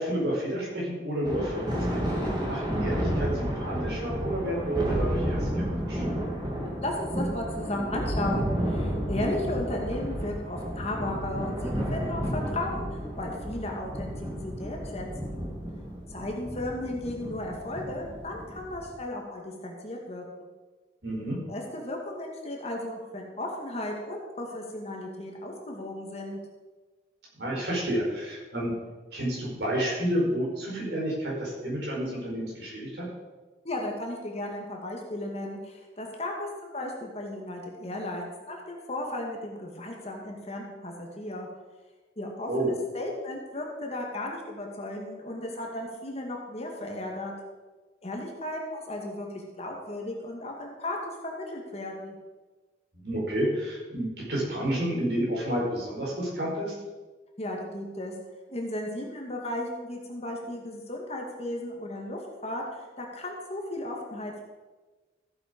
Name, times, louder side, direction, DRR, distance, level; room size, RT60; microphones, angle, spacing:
voice 1, 0.0-2.0 2.5-6.0 21.0-21.4 27.4-28.7 29.1-33.1 42.5-42.7 53.0-56.7, right 1 dB, 60° right, -4 dB, 4.7 m, -30 dB
Thunder, 1.2-18.9, equal, 20° right, 2.5 m, -31 dB
voice 2, 6.8-12.9 13.2-15.4 16.1-20.5 21.2-26.4 33.6-41.5 42.2-47.3 48.0-52.1 57.4-58.1 58.5-62.6 63.0-64.4, left 1 dB, 35° left, 0 dB, 1.9 m, -35 dB
15.0 x 7.9 x 5.2 m, 1.2 s
head